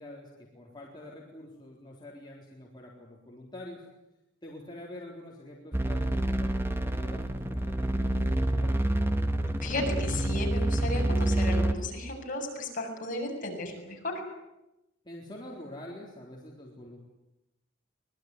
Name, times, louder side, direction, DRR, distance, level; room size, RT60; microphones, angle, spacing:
voice 1, 0.0-3.9 4.4-8.8 15.0-17.0, left 1 dB, 20° left, -3 dB, 4.0 m, -46 dB
sound 1, 5.7-11.7, right 1 dB, 10° right, 1.6 m, -28 dB
voice 2, 9.6-14.1, left 2 dB, 45° left, 1 dB, 7.5 m, -34 dB
24.5 x 21.0 x 9.9 m, 0.93 s
head